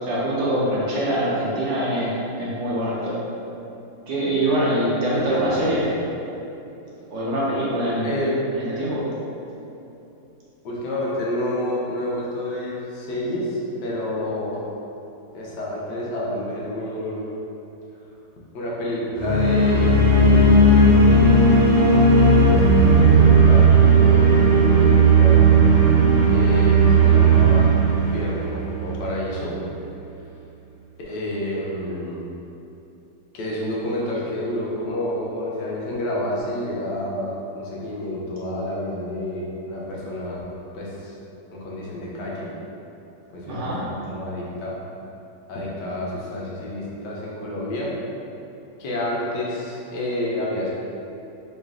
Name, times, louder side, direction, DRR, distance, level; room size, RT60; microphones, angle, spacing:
voice 1, 0.0-3.2 4.1-5.9 7.1-8.2 8.5-9.1 43.5-43.9, right 1 dB, 65° right, -7 dB, 1.2 m, -24 dB
voice 2, 5.1-5.7 8.0-8.4 10.6-14.6 15.3-17.3 18.5-21.5 22.5-23.7 24.0-25.5 26.3-29.6 31.0-32.2 33.3-40.4 40.7-41.1 41.5-42.5 43.3-44.8 45.5-47.9 48.8-50.7, left 1 dB, 80° left, -5 dB, 1.4 m, -29 dB
sound 1, 19.2-29.2, right 3 dB, 85° right, 1.5 m, -15 dB
3.2 x 3.1 x 3.6 m, 2.9 s
omnidirectional pair, 1.8 m